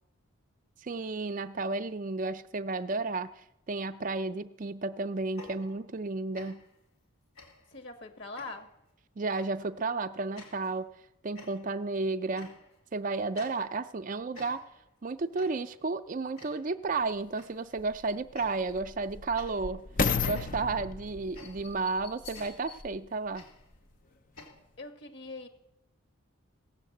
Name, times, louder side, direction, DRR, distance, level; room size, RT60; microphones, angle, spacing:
voice 1, 0.8-6.6 9.2-10.9 11.2-12.6 12.9-14.6 15.0-19.8 20.2-23.5, right 3 dB, 35° right, 10 dB, 0.4 m, -32 dB
sound 1, 5.2-6.1 6.3-6.8 7.4-7.8 8.4-8.8 9.4-9.7 10.4-10.8 11.4-11.9 12.3-12.9 13.3-14.0 14.3-14.9 15.4-15.8 16.4-16.8 17.4-17.7 18.3-18.8 19.4-24.5, left 3 dB, 80° left, 3.0 m, -51 dB
voice 2, 7.7-8.7 24.8-25.5, left 3 dB, 55° left, 6 dB, 1.6 m, -42 dB
sound 2, 17.0-17.1 17.8-23.1 23.7-23.8, left 4 dB, 40° left, 0.5 m, -34 dB
17.0 x 7.3 x 7.8 m, 0.85 s
head